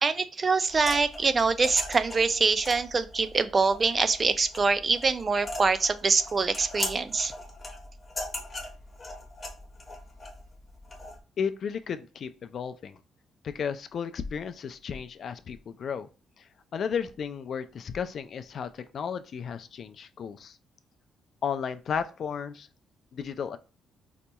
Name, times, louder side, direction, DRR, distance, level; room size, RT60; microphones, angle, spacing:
voice 1, 0.0-7.3, right 4 dB, 35° right, 12 dB, 0.4 m, -24 dB
sound 1, 0.7-11.2, left 2 dB, 30° left, 0.8 m, -40 dB
voice 2, 11.4-13.0 13.4-16.1 16.4-20.6 21.4-22.7 23.1-23.6, left 7 dB, 55° left, 10 dB, 0.3 m, -34 dB
4.0 x 2.8 x 2.2 m, 0.33 s
cardioid pair, 90°, 0 cm